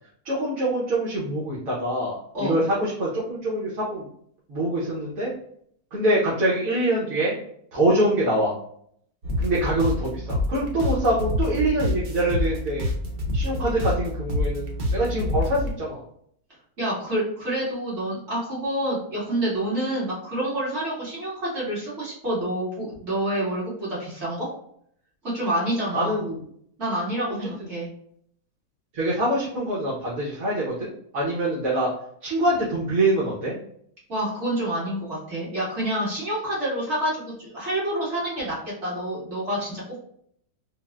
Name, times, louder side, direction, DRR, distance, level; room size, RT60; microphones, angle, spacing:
voice 1, 0.2-4.1 4.5-5.3 5.9-7.4 7.7-8.6 9.4-12.9 13.3-16.0 25.9-26.4 27.6-27.7 28.9-31.9 32.2-33.5, right 1 dB, 65° right, -7 dB, 1.2 m, -24 dB
sound 1, 9.2-15.8, left 1 dB, 90° right, 0.4 m, -27 dB
voice 2, 16.8-24.5 25.2-26.2 26.8-27.9 34.1-40.0, right 1 dB, 45° right, -7 dB, 1.8 m, -28 dB
4.0 x 2.0 x 2.3 m, 0.66 s
omnidirectional pair, 1.6 m